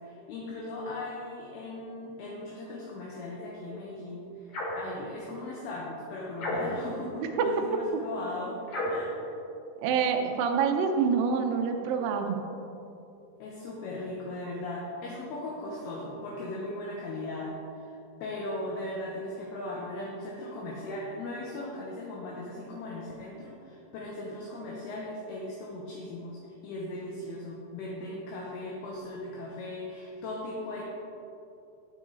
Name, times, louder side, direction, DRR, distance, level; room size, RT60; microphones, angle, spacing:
voice 1, 0.0-4.5 4.8-8.6 8.9-9.2 13.4-30.8, left 2 dB, 75° left, -3 dB, 2.7 m, -38 dB
sound 1, 4.5-4.9 6.4-6.9 8.7-9.1, left 1 dB, 50° left, 3.1 m, -32 dB
voice 2, 9.8-12.4, right 6 dB, 85° right, 3 dB, 2.0 m, -26 dB
9.6 x 8.6 x 3.9 m, 2.8 s
omnidirectional pair, 5.0 m